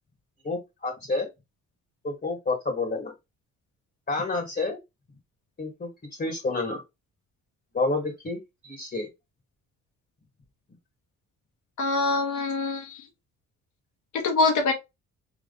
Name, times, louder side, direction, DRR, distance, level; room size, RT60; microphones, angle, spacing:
voice 1, 0.4-1.3 2.0-3.1 4.1-4.8 5.6-5.9 6.2-6.8 7.7-9.1, left 3 dB, 35° left, 1.9 m, -29 dB
voice 2, 11.8-13.0 14.1-14.7, left 3 dB, 75° left, 1.7 m, -24 dB
3.7 x 3.1 x 3.8 m
cardioid pair, 90°, 30 cm